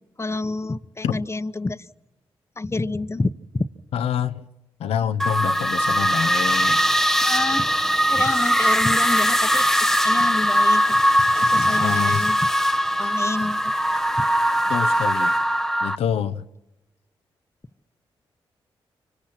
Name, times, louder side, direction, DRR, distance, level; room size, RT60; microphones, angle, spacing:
voice 1, 0.2-1.9 2.6-3.6 7.2-7.7 8.1-9.7 10.0-11.0 11.3-12.4 13.0-13.7 14.2-14.3, left 3 dB, 25° left, 1.1 m, -28 dB
voice 2, 3.9-4.4 4.8-6.8 11.7-12.2 14.7-15.3 15.8-16.4, left 8 dB, 85° left, 0.9 m, -26 dB
sound 1, 5.2-16.0, equal, 5° left, 1.1 m, -20 dB
29.0 x 25.5 x 6.0 m
supercardioid pair, 50°, 10 cm